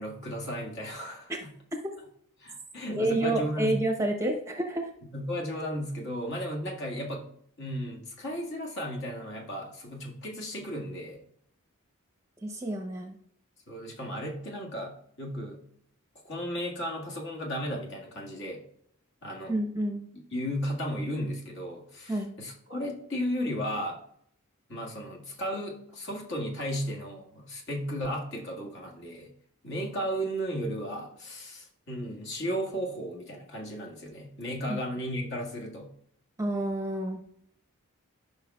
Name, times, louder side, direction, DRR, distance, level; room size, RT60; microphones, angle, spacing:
voice 1, 0.0-1.5 2.4-3.7 5.1-7.3 7.6-11.2 13.7-15.6 16.2-18.6 19.2-19.5 20.3-24.0 24.7-29.3 29.6-35.9, equal, 55° left, -1 dB, 1.8 m, -34 dB
voice 2, 2.9-4.9 12.4-13.2 19.5-20.1 22.1-22.3 34.7-34.8 36.4-37.2, right 1 dB, 15° right, 4 dB, 0.8 m, -29 dB
13.5 x 5.8 x 2.3 m, 0.68 s
head